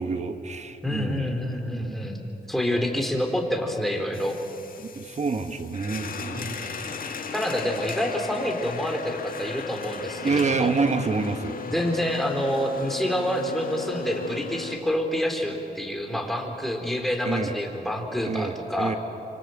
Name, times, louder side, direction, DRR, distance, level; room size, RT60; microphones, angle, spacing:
voice 1, 0.0-1.4 1.7-2.0 4.8-6.7 10.2-11.6 17.2-17.6 18.2-19.0, right 4 dB, 45° right, 8 dB, 1.5 m, -28 dB
voice 2, 0.8-4.4 6.3-6.7 7.3-10.8 11.7-19.0, equal, ahead, 2 dB, 3.9 m, -27 dB
sound 1, 4.1-14.8, left 5 dB, 60° left, 1.8 m, -36 dB
25.5 x 25.5 x 8.0 m, 2.9 s
cardioid pair, 90°, 16 cm